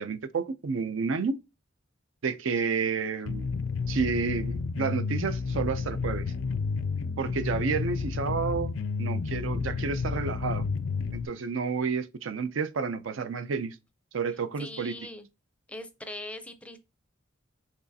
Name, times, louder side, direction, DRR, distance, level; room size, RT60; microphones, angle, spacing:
voice 1, 0.0-1.4 2.2-3.5 3.9-6.3 7.2-8.7 9.0-10.7 11.1-13.8 14.1-15.0, right 5 dB, 75° right, 0.5 m, -30 dB
sound 1, 3.3-11.3, left 4 dB, 75° left, 0.4 m, -31 dB
voice 2, 14.6-15.3 15.7-16.8, left 1 dB, 5° left, 0.5 m, -41 dB
6.0 x 3.2 x 2.7 m
head